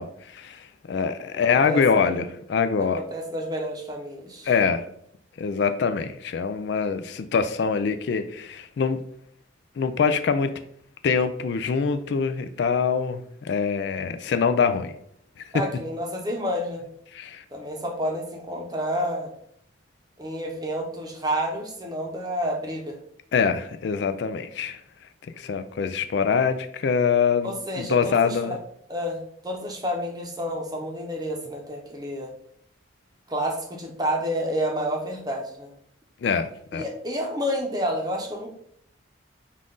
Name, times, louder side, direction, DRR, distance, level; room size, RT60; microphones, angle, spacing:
voice 1, 0.0-3.0 4.4-4.9 5.4-9.0 9.8-10.5 11.0-14.9 15.4-15.5 17.1-17.4 23.3-24.8 25.2-28.6 36.2-36.8, left 6 dB, 60° left, 9 dB, 0.3 m, -24 dB
voice 2, 1.5-2.1 2.9-4.5 15.5-16.8 17.5-19.3 20.2-23.0 27.4-28.6 28.9-32.3 33.3-35.7 36.7-38.5, equal, 20° right, 1 dB, 0.7 m, -29 dB
5.6 x 2.5 x 3.8 m, 0.69 s
head